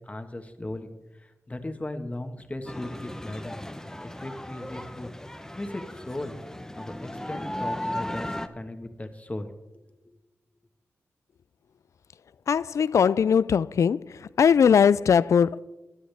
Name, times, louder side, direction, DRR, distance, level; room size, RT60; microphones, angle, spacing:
voice 1, 0.0-3.6 4.0-5.1 5.5-6.4 6.7-9.5 9.7-9.9, left 1 dB, 25° left, 1.5 m, -37 dB
sound 1, 2.7-8.5, left 1 dB, 10° left, 0.9 m, -36 dB
voice 2, 12.5-14.0 14.4-15.6, left 7 dB, 70° left, 0.3 m, -20 dB
16.5 x 9.9 x 3.5 m
cardioid pair, 50°, 5 cm